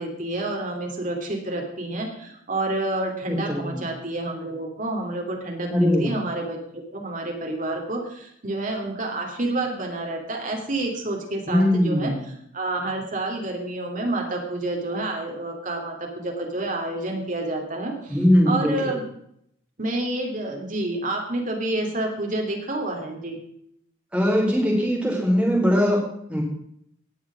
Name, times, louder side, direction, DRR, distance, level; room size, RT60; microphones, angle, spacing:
voice 1, 0.0-12.1 12.5-18.2 18.5-19.0 19.8-23.4, right 2 dB, 40° right, 2 dB, 2.9 m, -29 dB
voice 2, 3.3-3.8 5.7-6.1 11.5-12.2 18.1-18.9 24.1-26.0 26.3-26.4, equal, 5° right, -2 dB, 4.0 m, -21 dB
18.5 x 6.6 x 6.2 m, 0.71 s
head